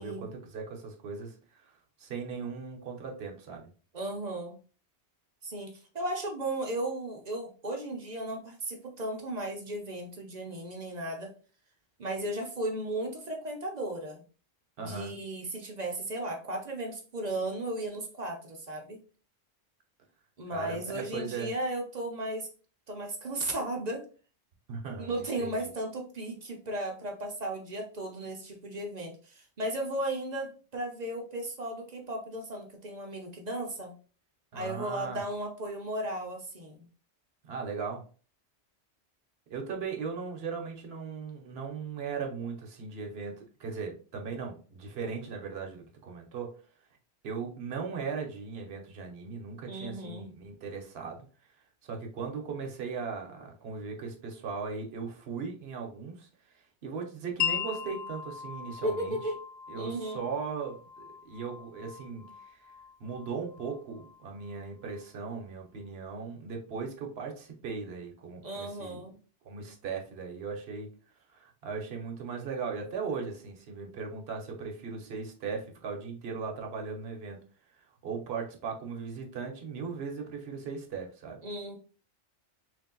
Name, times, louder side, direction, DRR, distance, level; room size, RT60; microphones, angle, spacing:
voice 1, 0.0-1.3 1.6-1.7 2.0-3.7 14.8-15.1 20.5-21.5 24.7-25.7 34.5-35.2 37.4-38.0 39.5-46.5 47.2-51.2 51.8-56.3 56.8-59.2 59.7-62.3 62.5-62.6 63.0-69.0 69.4-70.9 71.3-77.4 78.0-81.4, right 5 dB, 65° right, 2 dB, 1.1 m, -38 dB
voice 2, 3.9-4.6 5.4-11.3 12.0-14.2 14.8-19.0 20.4-22.5 22.9-24.0 25.0-33.9 34.5-36.9 49.7-50.3 58.8-59.4 59.7-60.2 68.4-69.2 81.4-81.8, right 1 dB, 45° right, 2 dB, 0.7 m, -35 dB
Wind chime, 57.4-65.0, left 9 dB, 70° left, 0.8 m, -39 dB
3.3 x 2.7 x 3.7 m, 0.38 s
omnidirectional pair, 1.2 m